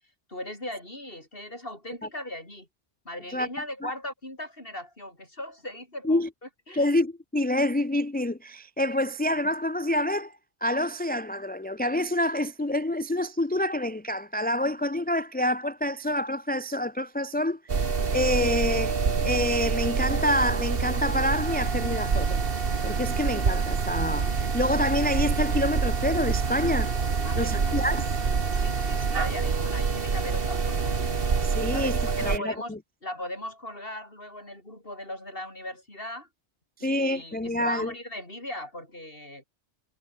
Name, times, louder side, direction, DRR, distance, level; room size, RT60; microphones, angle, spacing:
voice 1, 0.3-2.7 3.0-6.2 6.7-6.9 27.2-27.8 28.5-31.0 31.7-32.7 33.0-36.3 36.8-39.4, left 1 dB, 50° left, 8.0 m, -38 dB
voice 2, 6.7-10.3 10.6-17.6 18.1-19.0 19.2-22.4 22.8-26.9 27.4-28.0 31.4-32.8 36.8-37.9, left 1 dB, 10° left, 0.6 m, -27 dB
sound 1, 17.7-32.4, right 5 dB, 55° right, 1.7 m, -26 dB
omnidirectional pair, 1.2 m